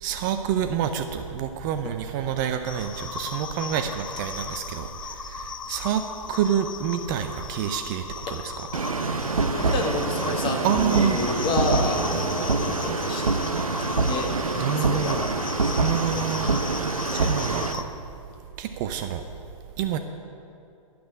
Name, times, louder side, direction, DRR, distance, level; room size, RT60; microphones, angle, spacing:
voice 1, 0.0-6.0 6.3-8.5 10.6-11.2 14.5-15.2 15.8-16.8 17.1-17.9 18.6-19.2 19.8-20.0, right 9 dB, 35° right, 7 dB, 0.6 m, -28 dB
sound 1, 2.6-17.8, left 6 dB, 70° left, 0.7 m, -36 dB
sound 2, 8.7-17.7, right 4 dB, 80° right, 0.8 m, -26 dB
voice 2, 9.5-16.3, left 2 dB, 30° left, 2 dB, 1.6 m, -31 dB
11.5 x 6.0 x 8.5 m, 2.5 s
figure-of-eight pair, 110°, 18 cm